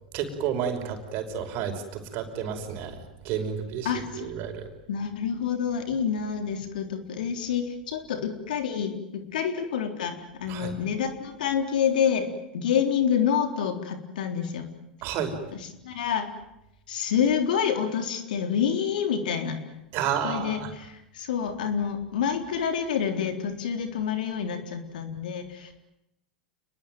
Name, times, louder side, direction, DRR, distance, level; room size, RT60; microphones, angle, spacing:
voice 1, 0.1-3.0 3.2-3.9 4.2-4.7 10.5-10.7 15.0-15.4 19.9-20.7, right 8 dB, 50° right, 5 dB, 5.6 m, -30 dB
voice 2, 3.8-4.3 4.9-14.7 15.5-16.3 16.9-19.6 20.2-25.7, left 7 dB, 70° left, 7 dB, 3.7 m, -28 dB
29.0 x 21.0 x 9.4 m, 0.87 s
hypercardioid pair, 95°, 5 cm